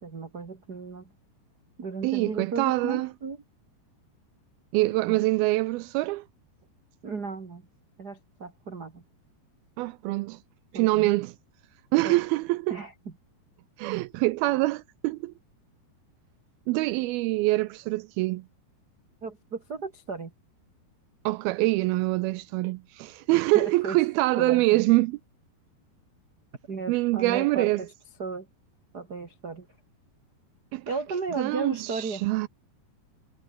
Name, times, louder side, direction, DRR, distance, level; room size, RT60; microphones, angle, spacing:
voice 1, 0.0-1.1 1.8-3.4 5.1-5.3 7.0-7.7 8.0-9.0 10.7-11.1 12.0-12.2 12.7-12.9 19.2-20.3 23.5-24.0 24.4-24.8 26.7-27.9 28.2-28.5 28.9-29.7 30.8-32.2, right 4 dB, 30° right, 2.0 m, -34 dB
voice 2, 2.0-3.1 4.7-6.3 9.8-10.4 10.7-11.3 11.9-12.7 13.8-15.3 16.7-18.5 21.3-25.2 26.9-27.8 30.7-30.9 31.4-32.5, right 20 dB, 85° right, 2.2 m, -25 dB
omnidirectional pair, 4.9 m